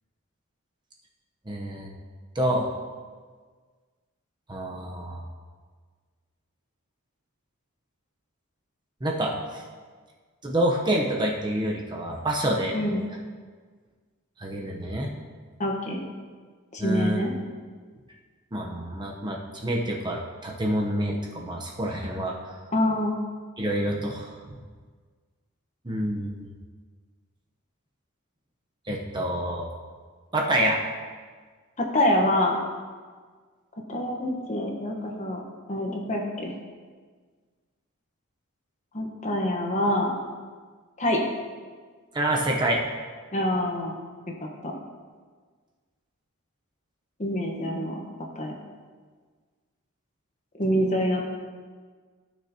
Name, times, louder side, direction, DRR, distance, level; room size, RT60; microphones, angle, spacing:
voice 1, 1.5-1.9 2.3-2.7 4.5-5.3 9.0-9.6 10.4-12.8 14.4-15.1 16.8-17.3 18.5-22.4 23.6-24.6 25.8-26.3 28.9-29.7 30.3-30.8 42.1-42.8, right 1 dB, 20° right, -1 dB, 0.9 m, -27 dB
voice 2, 15.6-16.0 16.7-17.3 22.7-23.1 31.8-32.6 33.9-35.4 35.7-36.5 38.9-40.1 41.0-41.2 43.3-44.0 44.4-44.7 47.2-48.0 48.3-48.5 50.6-51.3, left 1 dB, 35° left, 1 dB, 1.2 m, -26 dB
15.0 x 6.5 x 2.9 m, 1.5 s
head